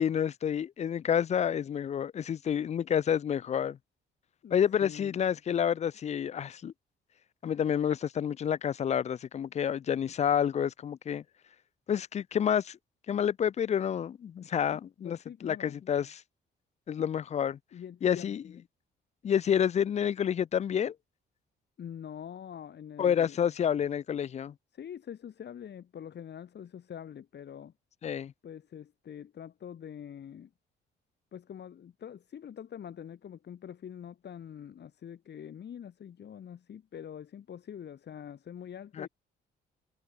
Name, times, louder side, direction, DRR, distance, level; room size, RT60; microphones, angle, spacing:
voice 1, 0.0-3.8 4.5-6.7 7.4-11.2 11.9-12.8 13.1-16.2 16.9-17.6 18.0-18.4 19.2-20.9 23.0-24.5 28.0-28.3 39.0-39.1, left 8 dB, 35° left, 0.4 m, -29 dB
voice 2, 4.8-5.2 14.7-15.8 17.7-18.3 21.8-23.4 24.7-27.7 28.4-30.5 31.3-39.1, left 9 dB, 60° left, 6.1 m, -45 dB
cardioid pair, 90°, 20 cm